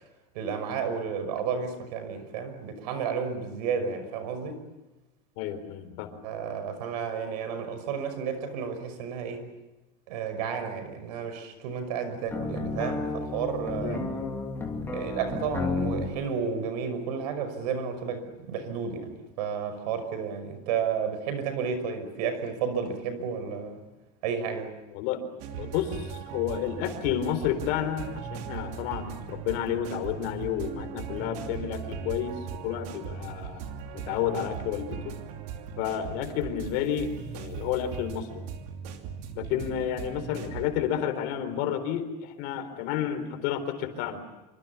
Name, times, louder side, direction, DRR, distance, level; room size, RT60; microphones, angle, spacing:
voice 1, 0.3-4.6 6.2-9.5 10.1-14.1 14.9-19.1 19.4-23.8 24.2-24.7, right 6 dB, 80° right, 5.8 m, -32 dB
voice 2, 5.4-6.2 13.8-14.0 24.9-25.2 25.6-32.3 32.6-33.6 33.9-35.1 35.8-38.4 39.4-44.2, left 10 dB, 55° left, 4.0 m, -31 dB
sound 1, 12.3-16.1, left 3 dB, 10° left, 3.1 m, -32 dB
sound 2, 25.4-40.7, right 7 dB, 55° right, 2.8 m, -38 dB
27.0 x 25.0 x 7.2 m
cardioid pair, 175°, 21 cm